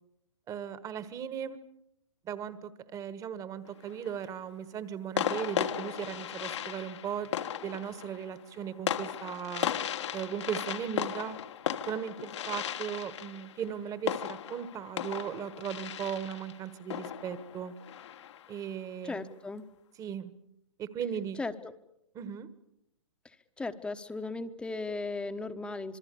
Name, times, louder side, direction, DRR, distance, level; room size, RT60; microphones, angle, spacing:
voice 1, 0.5-1.6 2.2-7.3 7.6-9.7 10.1-11.4 11.9-17.7 18.5-19.2 20.0-20.3 20.8-21.4 22.1-22.5, right 8 dB, 20° right, 15 dB, 1.4 m, -37 dB
sound 1, 3.6-4.2 5.2-18.6, left 10 dB, 65° left, 1.4 m, -36 dB
voice 2, 19.0-19.6 21.4-21.7 23.6-26.0, left 3 dB, 5° left, 9 dB, 1.1 m, -36 dB
26.5 x 22.0 x 7.0 m, 0.80 s
hypercardioid pair, 135°, 16 cm